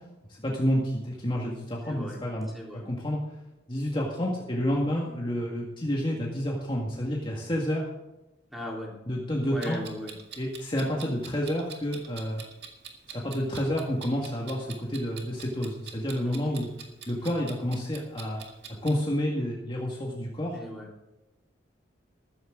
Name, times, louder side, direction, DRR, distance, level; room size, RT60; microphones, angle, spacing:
voice 1, 0.3-3.2 3.7-7.9 9.1-9.8 10.4-12.4 13.1-16.7 17.1-18.4 18.8-20.6, equal, 25° left, -2 dB, 1.9 m, -29 dB
voice 2, 1.9-2.2 2.5-2.8 8.5-8.9 9.4-10.1 16.2-16.4 20.5-20.9, left 1 dB, ahead, -3 dB, 3.8 m, -37 dB
Clock, 9.6-18.9, right 6 dB, 65° right, 2.1 m, -45 dB
14.0 x 14.0 x 3.8 m, 1.0 s
head